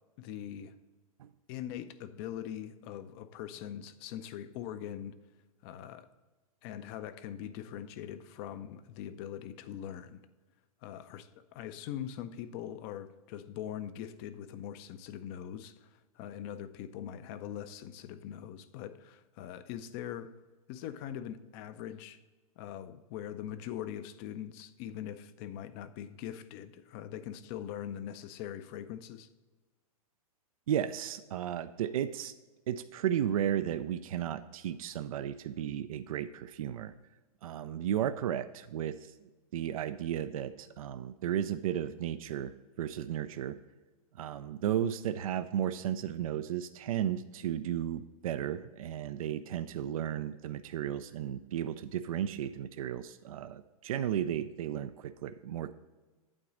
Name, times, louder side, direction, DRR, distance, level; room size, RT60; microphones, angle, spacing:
voice 1, 0.2-0.7 1.5-5.2 5.6-6.1 6.6-10.3 10.8-20.3 20.7-22.2 22.6-29.3, left 10 dB, 40° left, 13 dB, 0.5 m, -42 dB
voice 2, 30.7-32.3 32.7-36.9 37.4-39.1 39.5-43.6 44.2-55.7, right 10 dB, 70° right, 11 dB, 0.4 m, -34 dB
8.7 x 3.9 x 6.1 m, 1.2 s
hypercardioid pair, 110°, 19 cm